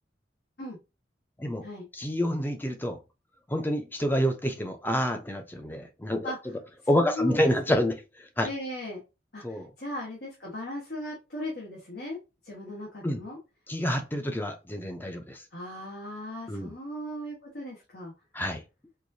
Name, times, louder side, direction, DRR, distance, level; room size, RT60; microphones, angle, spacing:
voice 1, 1.9-3.0 3.5-6.3 6.9-8.5 9.4-9.7 13.0-13.2 13.7-15.4 16.5-16.7 18.3-18.6, equal, 10° left, 5 dB, 0.6 m, -28 dB
voice 2, 6.9-7.5 8.4-9.0 9.3-12.2 12.4-13.4 15.5-18.1, left 1 dB, 65° left, -3 dB, 1.3 m, -37 dB
4.6 x 2.7 x 2.6 m, 0.27 s
head